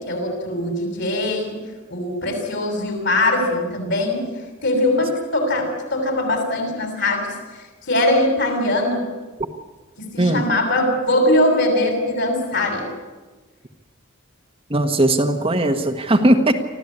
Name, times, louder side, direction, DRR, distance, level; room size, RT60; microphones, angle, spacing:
voice 1, 0.0-1.5 1.9-4.2 4.6-7.3 7.8-9.0 10.0-12.8, left 1 dB, 60° left, 3 dB, 7.1 m, -21 dB
voice 2, 14.7-16.6, right 1 dB, 25° right, 4 dB, 1.4 m, -18 dB
25.5 x 15.0 x 9.9 m, 1.3 s
head